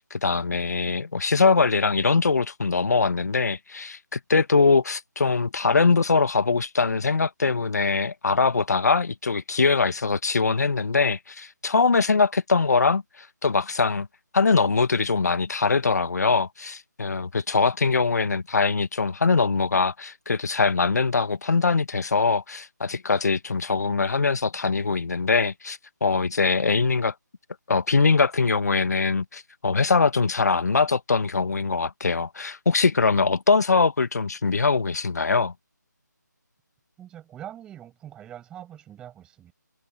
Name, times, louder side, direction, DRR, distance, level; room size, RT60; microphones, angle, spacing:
voice 1, 0.0-14.1 14.3-27.1 27.7-35.5, left 4 dB, 60° left, 1.5 m, -22 dB
voice 2, 37.0-39.5, right 11 dB, 10° right, 7.0 m, -43 dB
figure-of-eight pair, 160°, 10 cm